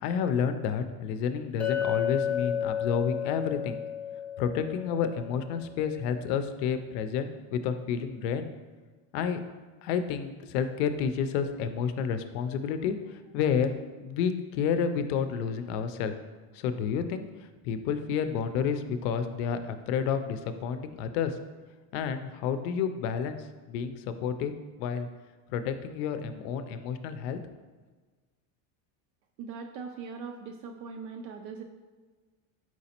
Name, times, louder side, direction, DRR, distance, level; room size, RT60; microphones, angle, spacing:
voice 1, 0.0-3.8 4.4-8.5 9.1-9.4 9.8-13.7 14.0-16.1 16.5-21.4 21.9-25.1 25.5-27.4, left 7 dB, 85° left, 10 dB, 0.5 m, -30 dB
Chink clink, 1.6-5.8, left 9 dB, 5° left, 0.3 m, -32 dB
voice 2, 29.4-31.6, right 5 dB, 75° right, 4 dB, 0.5 m, -40 dB
4.6 x 4.0 x 2.8 m, 1.4 s
cardioid pair, 150°, 45 cm